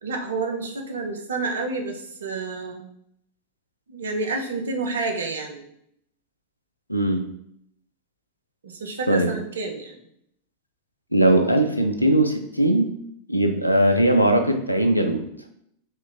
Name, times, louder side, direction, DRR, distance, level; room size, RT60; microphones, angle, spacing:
voice 1, 0.0-2.9 3.9-5.7 8.6-9.9, right 3 dB, 65° right, 3 dB, 0.5 m, -29 dB
voice 2, 6.9-7.2 9.1-9.3 11.1-12.9 13.3-15.2, right 1 dB, 90° left, 5 dB, 0.3 m, -19 dB
2.9 x 2.4 x 3.7 m, 0.72 s
figure-of-eight pair, 90°, 0 cm